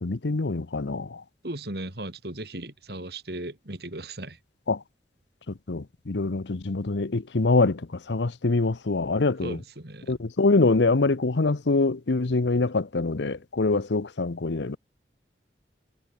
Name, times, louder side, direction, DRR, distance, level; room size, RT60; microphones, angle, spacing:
voice 1, 0.0-1.2 4.7-4.8 5.7-9.6 10.1-14.8, left 3 dB, 85° left, 0.8 m, -24 dB
voice 2, 1.4-4.4 9.4-10.2, right 1 dB, 65° right, 3.3 m, -36 dB
head